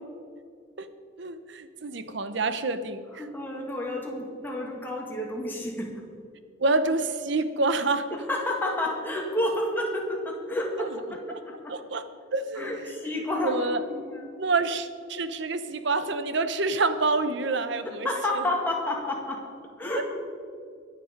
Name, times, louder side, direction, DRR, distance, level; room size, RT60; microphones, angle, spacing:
voice 1, 1.2-3.0 6.6-8.1 10.8-10.9 11.7-12.0 12.3-13.0 13.4-13.8 14.4-18.1 20.0-20.1, right 3 dB, 60° right, 11 dB, 0.8 m, -27 dB
voice 2, 3.1-5.9 8.1-11.7 12.5-14.3 17.8-19.4 19.8-20.0, left 1 dB, 10° left, -1 dB, 2.0 m, -30 dB
22.0 x 7.6 x 5.2 m, 2.3 s
head